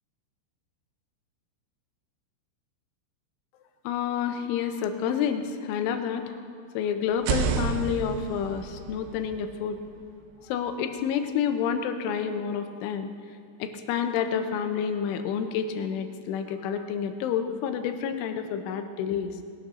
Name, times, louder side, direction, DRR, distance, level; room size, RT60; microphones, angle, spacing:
voice 1, 3.8-6.4 6.7-9.8 10.4-13.1 13.6-19.4, left 7 dB, 85° left, 7 dB, 3.3 m, -29 dB
sound 1, 7.1-10.9, right 6 dB, 85° right, 3.3 m, -32 dB
20.5 x 12.0 x 3.8 m, 2.2 s
omnidirectional pair, 5.4 m